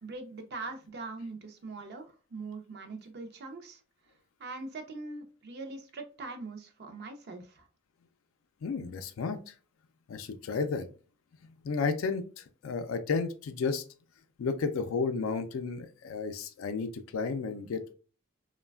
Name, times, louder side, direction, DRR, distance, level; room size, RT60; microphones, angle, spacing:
voice 1, 0.0-3.8 4.4-7.7, right 3 dB, 50° right, 6 dB, 0.5 m, -42 dB
voice 2, 8.6-9.5 10.1-10.9 11.6-13.8 14.4-17.9, left 4 dB, 80° left, 9 dB, 0.4 m, -32 dB
3.1 x 2.1 x 2.2 m, 0.37 s
head